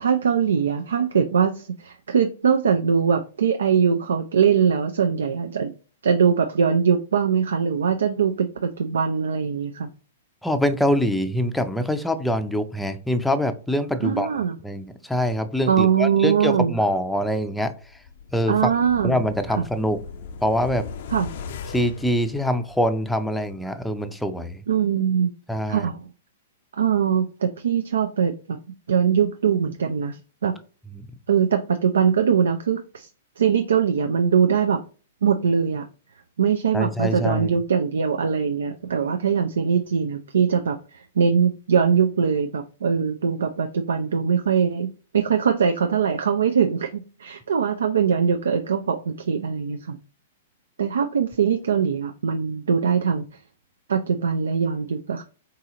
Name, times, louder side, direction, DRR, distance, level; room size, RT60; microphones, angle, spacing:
voice 1, 0.0-5.7 6.0-9.9 14.0-14.6 15.7-16.7 18.5-19.7 21.1-21.3 24.7-25.3 25.7-26.0 26.8-28.6 28.9-30.5 31.3-33.1 33.4-34.8 35.2-35.8 36.4-44.9 45.1-50.0 50.8-53.3 53.9-55.2, right 7 dB, 75° right, 6 dB, 0.4 m, -22 dB
voice 2, 10.4-14.3 14.6-17.7 18.3-18.7 19.0-20.0 20.4-20.9 21.7-24.6 25.5-25.9 30.9-31.1 36.7-37.5, equal, 5° left, 8 dB, 0.5 m, -24 dB
sound 1, 17.8-23.1 23.4-23.5, left 5 dB, 55° left, 0.4 m, -38 dB
3.9 x 2.8 x 3.7 m, 0.36 s
figure-of-eight pair, 110°, 0 cm